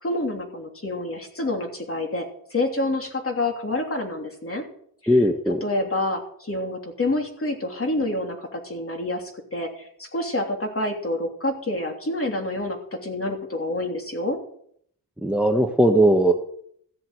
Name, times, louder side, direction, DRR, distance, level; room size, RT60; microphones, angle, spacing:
voice 1, 0.0-2.3 2.5-4.6 5.0-5.2 5.5-14.4, left 2 dB, 40° left, 2 dB, 3.1 m, -28 dB
voice 2, 5.1-5.6 15.2-16.3, right 1 dB, 5° right, 4 dB, 1.2 m, -18 dB
15.0 x 7.7 x 7.7 m, 0.66 s
wide cardioid pair, 100°, 36 cm